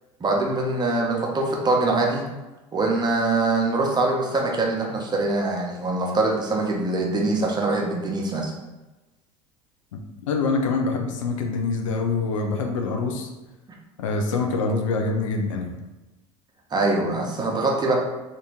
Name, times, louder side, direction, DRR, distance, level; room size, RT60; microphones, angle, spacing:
voice 1, 0.2-2.2 2.7-8.5 16.7-18.0, right 2 dB, 25° right, -1 dB, 0.8 m, -23 dB
voice 2, 10.3-13.3 14.0-15.7, left 3 dB, 85° left, 3 dB, 0.5 m, -25 dB
2.8 x 2.6 x 3.5 m, 1.1 s
hypercardioid pair, 80°, 16 cm